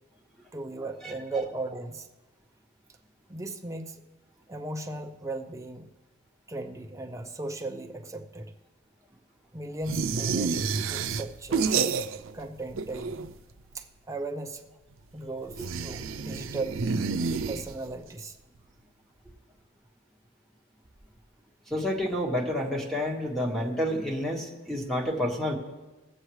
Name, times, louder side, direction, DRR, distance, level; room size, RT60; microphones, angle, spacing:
voice 1, 0.5-2.1 3.3-4.0 4.5-5.9 6.5-8.5 9.5-11.6 12.3-13.3 13.7-14.7 15.1-16.8 17.5-18.4, right 2 dB, 15° right, 4 dB, 0.7 m, -37 dB
sound 1, 9.9-12.4 12.7-13.5 15.5-18.0, right 5 dB, 85° right, 0.5 m, -29 dB
voice 2, 21.7-25.5, left 1 dB, ahead, -1 dB, 1.7 m, -29 dB
20.5 x 7.8 x 3.2 m, 1.2 s
head